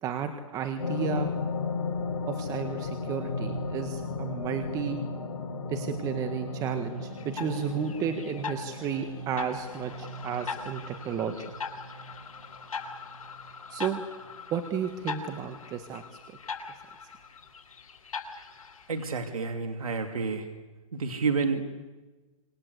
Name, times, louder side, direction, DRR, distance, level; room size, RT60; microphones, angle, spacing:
voice 1, 0.0-1.3 2.3-5.0 5.7-11.3 13.7-14.0 14.5-16.0, right 7 dB, 20° right, 7 dB, 1.7 m, -32 dB
sound 1, 0.8-13.7 14.2-14.3, left 3 dB, 50° left, 7.4 m, -36 dB
sound 2, 7.2-19.1, left 5 dB, 80° left, 7.3 m, -41 dB
voice 2, 18.9-20.5 20.9-21.7, right 4 dB, 90° right, 5 dB, 2.8 m, -29 dB
27.0 x 27.0 x 8.2 m, 1.2 s
hypercardioid pair, 150°, 18 cm